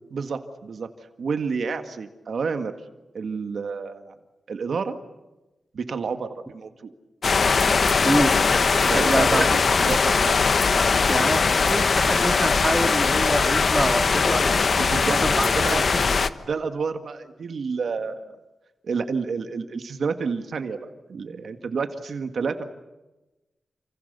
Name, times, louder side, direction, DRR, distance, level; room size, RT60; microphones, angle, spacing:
voice 1, 0.1-0.9 1.2-2.7 3.1-4.1 4.5-5.0 5.7-6.7 8.9-10.4 14.8-15.8 16.1-16.2 16.5-18.3 18.8-20.8 21.1-22.6, right 5 dB, 65° right, 7 dB, 1.9 m, -29 dB
sound 1, 7.2-16.3, left 4 dB, 50° left, 1.1 m, -20 dB
voice 2, 8.9-9.5 11.1-14.6 15.2-15.5 15.7-16.0, right 1 dB, 10° right, 5 dB, 2.2 m, -25 dB
29.5 x 27.0 x 6.9 m, 1.1 s
wide cardioid pair, 125°, 0 cm